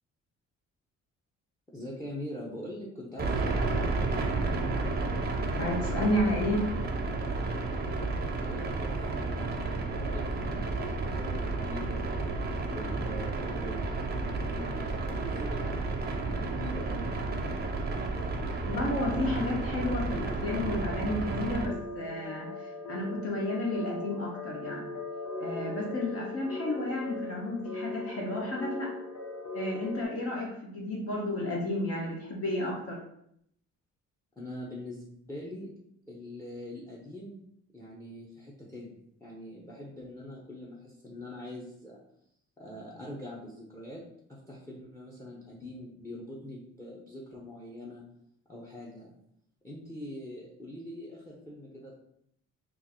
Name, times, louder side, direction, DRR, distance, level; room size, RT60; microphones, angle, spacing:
voice 1, 1.7-4.4 8.2-12.2 12.7-17.4 34.4-35.7 36.1-37.4 37.7-42.0 42.6-44.0 44.3-48.0 48.5-49.1 49.6-51.9, left 1 dB, 10° left, -2 dB, 0.7 m, -43 dB
sound 1, 3.2-21.7, right 3 dB, 35° right, 0.6 m, -32 dB
voice 2, 5.6-6.6 18.6-24.9 25.4-28.9 29.5-33.0, left 1 dB, 50° left, -2 dB, 0.9 m, -32 dB
sound 2, 20.5-30.1, left 2 dB, 80° left, 0.8 m, -39 dB
3.6 x 2.6 x 2.9 m, 0.72 s
cardioid pair, 90°, 30 cm